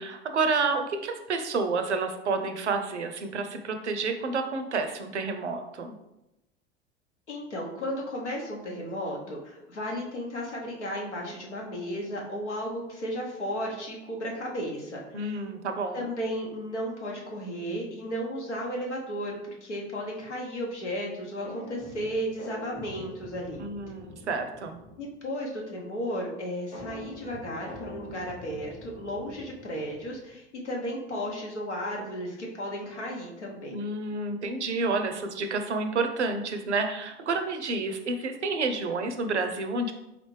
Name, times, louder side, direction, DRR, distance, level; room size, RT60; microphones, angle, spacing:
voice 1, 0.0-6.0 15.1-16.1 23.6-24.8 33.7-39.9, right 3 dB, 85° right, 7 dB, 0.5 m, -29 dB
voice 2, 7.3-15.4 15.9-19.3 19.6-23.6 25.0-33.8, equal, 85° left, -1 dB, 0.9 m, -34 dB
sound 1, 21.4-25.2 26.7-30.3, left 2 dB, 15° left, 1.0 m, -45 dB
3.8 x 3.3 x 3.1 m, 0.92 s
figure-of-eight pair, 75°, 34 cm